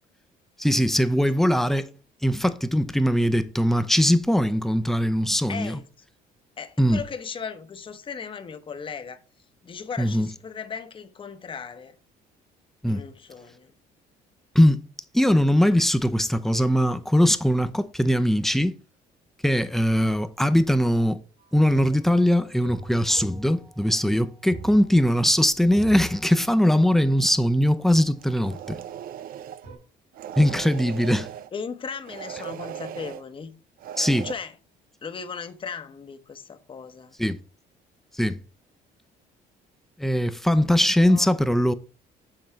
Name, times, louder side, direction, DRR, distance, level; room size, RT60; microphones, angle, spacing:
voice 1, 0.6-1.9 2.2-5.8 6.8-7.0 10.0-10.3 12.8-13.0 14.5-14.8 15.1-18.7 19.4-21.2 21.5-28.8 30.4-31.3 34.0-34.3 37.2-37.4 38.1-38.4 40.0-41.7, equal, ahead, 0.5 m, -21 dB
voice 2, 5.5-5.8 6.6-9.2 9.6-11.9 12.9-13.7 31.5-33.5 34.2-34.5 35.0-37.2 41.0-41.3, left 6 dB, 30° left, 0.8 m, -37 dB
sound 1, 21.4-28.3 29.6-29.8, right 3 dB, 85° right, 3.4 m, -44 dB
sound 2, 28.2-29.7 30.1-31.5 32.1-33.2 33.8-34.3, right 10 dB, 60° right, 0.4 m, -38 dB
7.6 x 3.8 x 4.4 m
cardioid pair, 110°, 17 cm